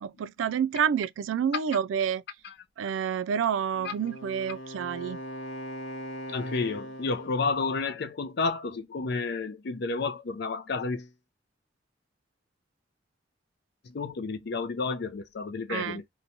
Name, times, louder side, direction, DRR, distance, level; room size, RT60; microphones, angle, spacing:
voice 1, 0.0-2.2 2.8-5.2 15.7-16.0, right 8 dB, 85° right, 0.3 m, -28 dB
Wind instrument woodwind instrument, 3.7-7.6, equal, 75° left, 0.8 m, -40 dB
voice 2, 6.3-11.1 13.9-16.1, left 4 dB, 60° left, 0.5 m, -31 dB
2.9 x 2.2 x 2.6 m
head